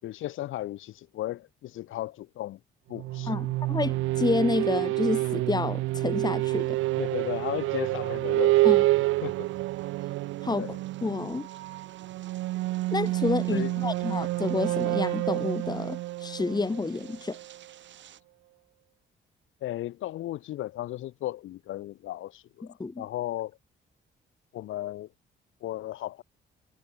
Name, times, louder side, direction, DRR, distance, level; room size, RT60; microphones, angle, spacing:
voice 1, 0.0-2.6 2.9-3.5 7.0-9.5 10.5-10.8 13.5-13.8 19.6-23.6 24.5-25.1 25.6-26.2, left 14 dB, 85° left, 5.8 m, -35 dB
sound 1, 2.9-17.6, right 18 dB, 90° right, 0.6 m, -28 dB
voice 2, 3.3-6.8 8.6-8.8 10.4-10.7 11.0-11.5 12.9-17.4 22.8-23.0, left 3 dB, 20° left, 2.0 m, -29 dB
sound 2, 6.4-18.2, right 10 dB, 70° right, 7.0 m, -55 dB
cardioid pair, 90°, 20 cm